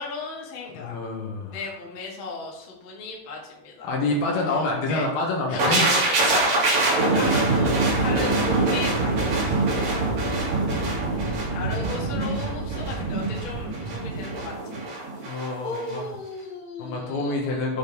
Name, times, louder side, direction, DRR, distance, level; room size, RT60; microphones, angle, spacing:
voice 1, 0.0-0.9 1.5-4.0 4.3-5.0 5.5-11.3 11.5-14.8 15.2-17.7, left 4 dB, 45° left, -2 dB, 1.9 m, -36 dB
voice 2, 0.7-1.6 3.8-5.9 10.6-11.7 15.2-16.1 16.8-17.8, left 2 dB, 75° left, 0 dB, 3.4 m, -28 dB
sound 1, 5.6-15.5 15.7-15.9, right 2 dB, 50° right, 3.4 m, -24 dB
8.3 x 5.2 x 5.3 m, 0.86 s
omnidirectional pair, 4.4 m